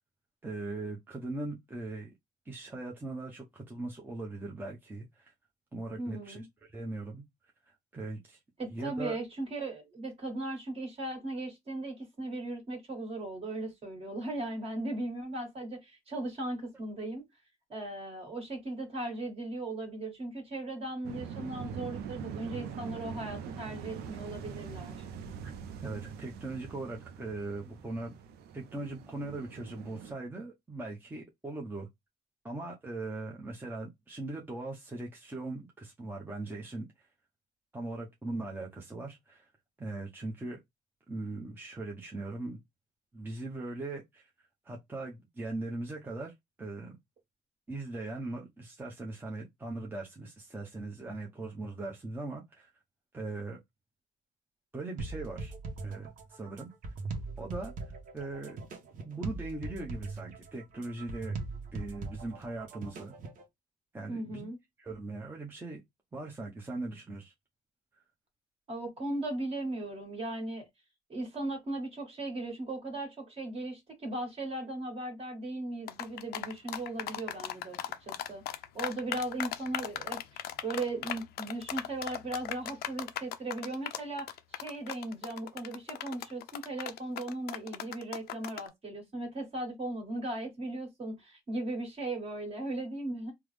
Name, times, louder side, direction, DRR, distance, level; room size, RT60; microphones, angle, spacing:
voice 1, 0.4-2.1 2.5-5.3 5.7-6.5 6.7-7.2 7.7-8.4 8.6-9.2 25.4-25.5 25.8-28.2 28.5-31.9 32.4-36.9 37.7-39.5 39.8-40.6 41.1-42.6 43.1-44.3 44.6-46.3 46.6-47.0 47.7-52.7 53.1-53.6 54.7-55.5 55.8-56.9 57.4-58.6 59.0-61.3 61.7-63.1 63.9-64.5 64.8-65.8 66.1-67.3, right 2 dB, 10° right, 0.6 m, -40 dB
voice 2, 6.0-6.4 8.6-17.3 17.7-25.0 64.1-64.6 68.7-70.7 71.1-93.3, right 2 dB, 35° right, 1.5 m, -37 dB
sound 1, 21.0-30.1, right 7 dB, 75° right, 0.4 m, -43 dB
sound 2, 55.0-63.4, right 3 dB, 50° right, 0.8 m, -40 dB
sound 3, 75.9-88.7, left 12 dB, 70° left, 0.5 m, -37 dB
3.4 x 2.0 x 3.2 m
cardioid pair, 110°, 17 cm